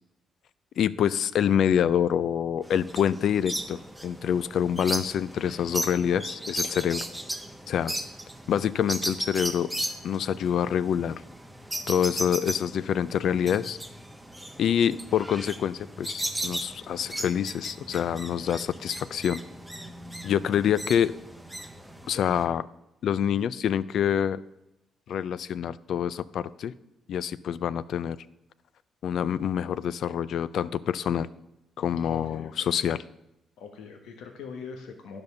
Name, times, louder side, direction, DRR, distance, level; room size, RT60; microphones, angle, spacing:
voice 1, 0.8-7.1 7.7-7.9 8.5-9.7 10.0-11.2 11.9-13.8 14.6-19.4 20.2-21.1 22.1-22.6 23.0-24.4 25.1-26.7 27.1-28.2 29.0-31.3 31.8-33.0, left 9 dB, 70° left, 17 dB, 0.4 m, -26 dB
sound 1, 2.6-22.4, right 1 dB, 5° right, 1.0 m, -37 dB
voice 2, 32.0-32.7 33.6-35.2, left 5 dB, 90° left, 4 dB, 1.2 m, -42 dB
10.5 x 5.3 x 6.7 m, 0.89 s
cardioid pair, 85°, 0 cm